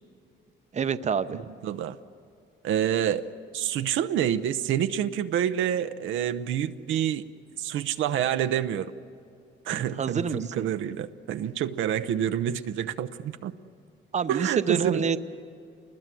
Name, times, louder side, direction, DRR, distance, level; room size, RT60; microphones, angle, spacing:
voice 1, 0.7-1.4 9.7-10.4 14.1-15.2, right 6 dB, 35° right, 12 dB, 0.8 m, -27 dB
voice 2, 1.3-2.0 2.6-3.3 3.5-7.2 7.6-8.9 9.7-13.5 14.3-15.1, right 10 dB, 80° right, 9 dB, 0.8 m, -28 dB
27.5 x 20.5 x 7.7 m, 2.5 s
cardioid pair, 90°, 20 cm